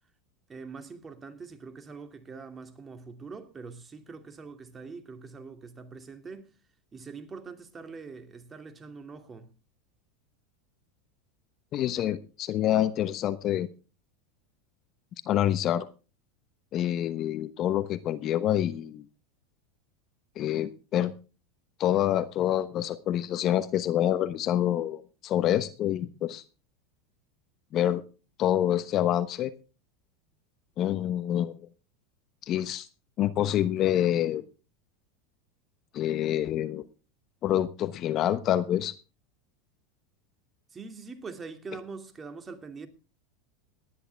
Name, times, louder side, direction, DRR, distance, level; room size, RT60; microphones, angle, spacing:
voice 1, 0.5-6.5 6.9-9.5 40.7-42.9, right 4 dB, 20° right, 2.5 m, -43 dB
voice 2, 11.7-13.7 15.3-15.8 16.7-19.0 20.4-21.1 21.8-26.4 27.7-28.0 28.4-29.5 30.8-31.6 32.5-32.9 33.2-34.4 35.9-36.8 37.4-38.9, left 11 dB, 45° left, 1.0 m, -27 dB
18.5 x 11.0 x 3.4 m
hypercardioid pair, 105°, 0 cm